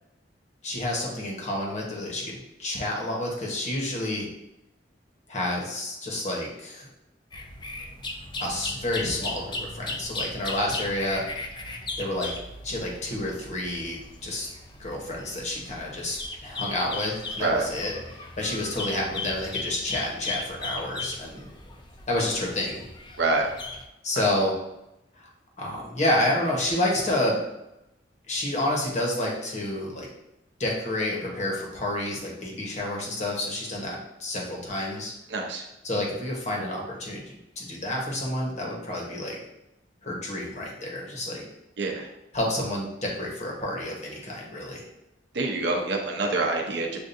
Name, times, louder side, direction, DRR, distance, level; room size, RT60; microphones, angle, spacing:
voice 1, 0.6-4.3 5.3-6.9 8.4-11.2 12.0-12.3 12.6-14.0 14.2-14.5 14.8-17.9 18.4-21.5 22.1-22.8 24.0-24.6 25.2-25.3 25.6-27.4 28.3-30.1 30.6-35.1 35.8-39.4 40.0-41.4 42.3-44.8, left 1 dB, 40° left, -2 dB, 1.1 m, -29 dB
sound 1, 7.3-23.9, left 2 dB, 25° left, 0.5 m, -37 dB
voice 2, 23.2-23.5 24.2-24.3 35.3-35.6 41.8-42.1 45.3-47.0, right 2 dB, 70° right, 1 dB, 0.7 m, -26 dB
6.9 x 2.5 x 2.6 m, 0.89 s
head